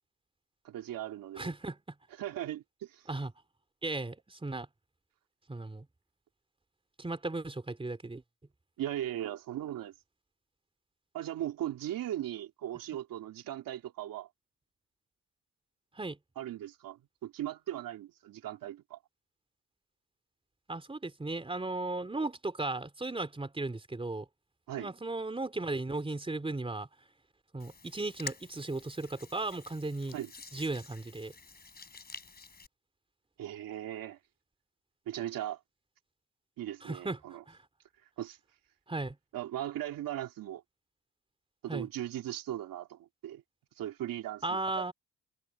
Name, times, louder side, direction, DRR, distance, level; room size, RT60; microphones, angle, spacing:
voice 1, 0.6-1.5 2.2-3.1 8.8-9.9 11.1-14.3 16.4-19.0 24.7-24.9 30.1-30.3 33.4-34.2 35.1-35.6 36.6-37.4 38.2-38.4 39.3-40.6 41.6-43.4 43.8-44.9, right 12 dB, 75° right, 2.8 m, -38 dB
voice 2, 1.4-2.0 3.1-3.3 3.8-4.7 5.5-5.9 7.0-8.2 15.9-16.2 20.7-24.3 24.8-26.9 27.5-30.2 30.5-31.3 36.8-37.6 38.9-39.2 41.7-41.9 44.4-44.9, right 2 dB, 15° right, 3.6 m, -36 dB
Hands, 27.6-32.7, left 4 dB, 30° left, 6.2 m, -48 dB
cardioid pair, 85°, 34 cm